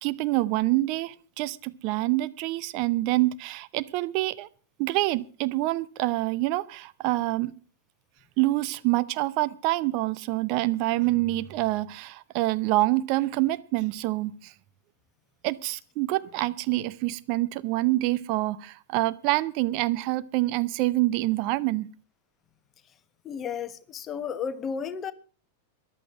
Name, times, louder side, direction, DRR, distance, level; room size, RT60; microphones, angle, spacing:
voice 1, 0.0-4.5 4.8-7.5 8.4-14.5 15.4-21.9, right 18 dB, 45° right, 0.7 m, -26 dB
voice 2, 23.2-25.1, left 7 dB, 25° left, 1.1 m, -33 dB
14.5 x 11.0 x 6.2 m
figure-of-eight pair, 90°, 0 cm